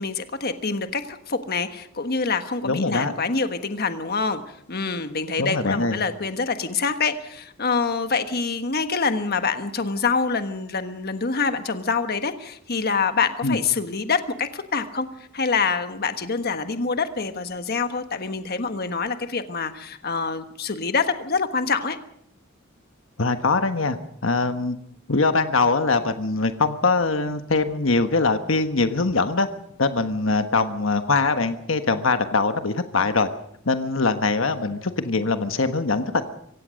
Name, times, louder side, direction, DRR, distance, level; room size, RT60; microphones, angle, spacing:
voice 1, 0.0-15.1 15.3-22.0, left 4 dB, 50° left, 8 dB, 1.4 m, -26 dB
voice 2, 2.6-3.1 5.4-6.0 13.4-13.6 23.2-24.8 25.1-29.5 29.8-33.3 33.6-36.2, left 3 dB, 70° left, 8 dB, 1.3 m, -22 dB
25.0 x 17.0 x 6.4 m, 0.70 s
head